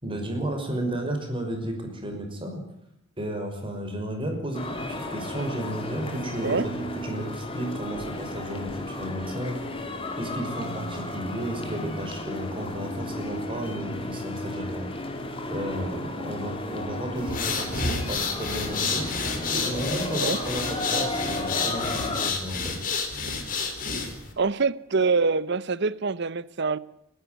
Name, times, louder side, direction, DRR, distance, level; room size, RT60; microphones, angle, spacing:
voice 1, 0.0-2.6 3.2-9.6 10.2-14.9 15.5-19.1 19.5-22.8, right 1 dB, 25° right, 5.7 m, -33 dB
sound 1, 4.5-22.3, left 2 dB, 30° left, 3.0 m, -34 dB
sound 2, 17.2-24.3, left 4 dB, 45° left, 4.2 m, -30 dB
voice 2, 24.4-26.8, right 4 dB, 60° right, 0.9 m, -25 dB
29.5 x 11.5 x 9.3 m
head